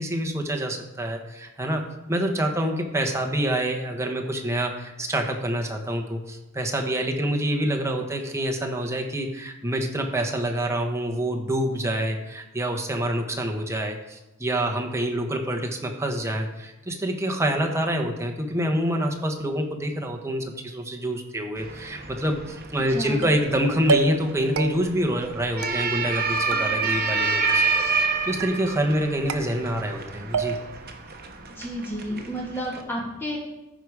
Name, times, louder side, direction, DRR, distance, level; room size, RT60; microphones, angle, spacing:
voice 1, 0.0-1.8 2.1-27.6 28.3-30.6, right 1 dB, 15° right, 2 dB, 1.1 m, -26 dB
sound 1, 21.6-32.8, right 4 dB, 50° right, 1.1 m, -29 dB
voice 2, 22.9-23.2 31.5-33.4, equal, 10° left, -3 dB, 2.4 m, -31 dB
sound 2, 23.2-23.5 23.9-24.3 24.6-25.1 25.6-26.2 26.5-27.2 27.5-28.0 28.4-28.9 29.3-30.0 30.3-30.9, right 4 dB, 85° right, 0.7 m, -30 dB
14.5 x 5.0 x 4.8 m, 1.0 s
head